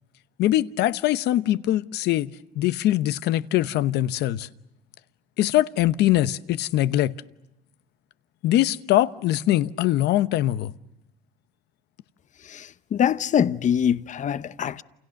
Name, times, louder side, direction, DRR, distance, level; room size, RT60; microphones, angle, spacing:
voice 1, 0.4-4.5 5.4-7.1 8.4-10.7, left 14 dB, 80° left, 1.0 m, -22 dB
voice 2, 12.5-14.8, left 8 dB, 45° left, 1.0 m, -24 dB
29.0 x 29.0 x 6.5 m
cardioid pair, 110°, 17 cm